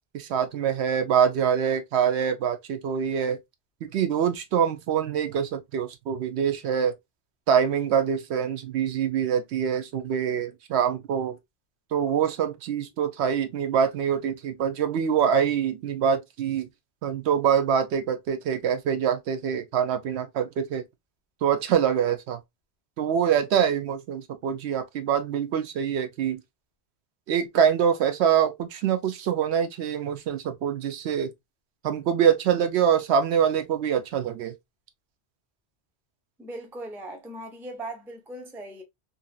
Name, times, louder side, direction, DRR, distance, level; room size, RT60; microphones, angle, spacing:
voice 1, 0.1-3.4 3.8-6.9 7.5-11.4 11.9-16.7 17.0-20.8 21.4-22.4 23.0-26.4 27.3-31.3 31.8-34.5, right 8 dB, 75° right, 0.8 m, -25 dB
voice 2, 36.4-38.8, right 1 dB, 5° right, 0.3 m, -39 dB
2.8 x 2.6 x 2.2 m
omnidirectional pair, 1.1 m